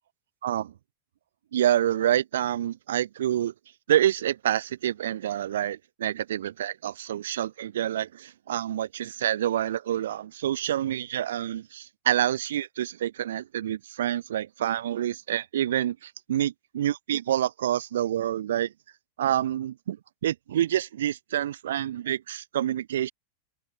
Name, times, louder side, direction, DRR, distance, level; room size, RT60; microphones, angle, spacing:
voice 1, 0.4-0.7 1.5-3.5 3.9-18.7 19.2-20.0 20.2-23.1, right 11 dB, 60° right, 0.5 m, -27 dB
open air
figure-of-eight pair, 90°, 0 cm